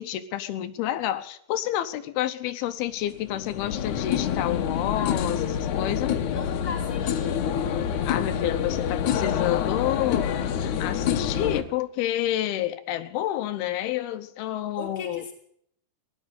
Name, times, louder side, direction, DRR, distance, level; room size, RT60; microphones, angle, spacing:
voice 1, 0.0-6.2 8.0-15.2, left 13 dB, 85° left, 11 dB, 2.7 m, -29 dB
sound 1, 2.9-11.6, left 8 dB, 70° left, 2.1 m, -27 dB
voice 2, 6.2-7.5 14.7-15.3, left 4 dB, 5° right, 0 dB, 1.7 m, -38 dB
16.0 x 11.0 x 8.2 m, 0.68 s
omnidirectional pair, 4.4 m